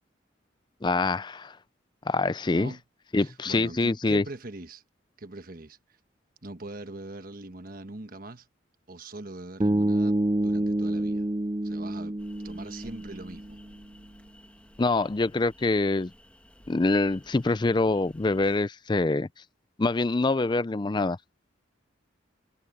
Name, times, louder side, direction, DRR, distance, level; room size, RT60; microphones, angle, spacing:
voice 1, 0.8-1.6 2.1-2.7 3.1-4.2 14.8-16.1 16.7-19.3 19.8-21.2, left 3 dB, 25° left, 0.4 m, -25 dB
voice 2, 3.1-4.8 5.2-5.8 6.4-8.5 8.9-11.3 11.6-12.2 12.4-13.6, right 2 dB, 50° right, 1.3 m, -42 dB
Bass guitar, 9.6-13.7, right 1 dB, 20° right, 0.6 m, -27 dB
sound 1, 12.2-18.7, equal, 5° left, 2.0 m, -54 dB
head